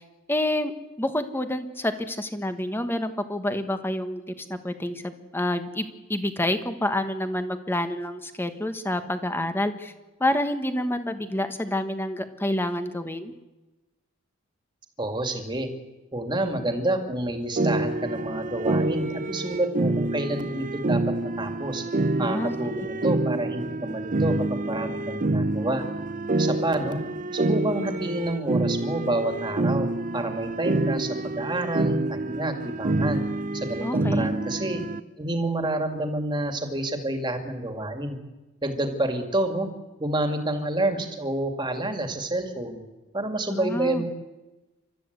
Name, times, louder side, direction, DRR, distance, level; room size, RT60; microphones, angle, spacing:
voice 1, 0.3-0.7 1.0-9.9 10.2-13.3 22.2-22.5 33.8-34.3 43.5-44.0, left 1 dB, 10° left, 8 dB, 1.3 m, -28 dB
voice 2, 15.0-15.7 16.1-21.8 22.2-25.8 26.4-27.0 27.3-29.9 30.1-33.2 33.5-34.8 35.2-38.2 38.6-39.7 40.0-42.8 43.1-44.1, right 1 dB, 20° right, 5 dB, 2.3 m, -28 dB
sound 1, 17.6-35.0, right 2 dB, 35° right, 0.7 m, -27 dB
29.0 x 13.5 x 8.2 m, 1.1 s
head